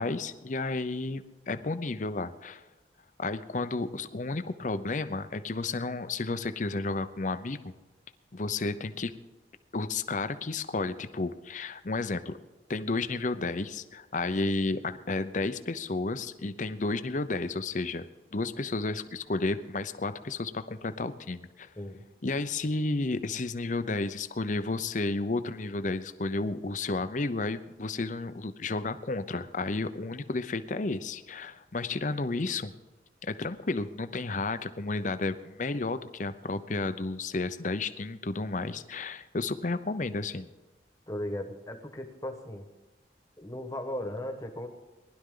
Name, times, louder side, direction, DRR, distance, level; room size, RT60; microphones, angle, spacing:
voice 1, 0.0-2.6 3.2-7.6 8.3-9.1 9.7-12.4 12.7-18.1 18.3-21.7 22.2-32.7 33.2-40.5, left 3 dB, 45° left, 11 dB, 0.7 m, -32 dB
voice 2, 41.1-42.7 43.4-44.7, left 1 dB, 20° left, 6 dB, 1.3 m, -37 dB
19.5 x 11.5 x 3.8 m, 1.2 s
head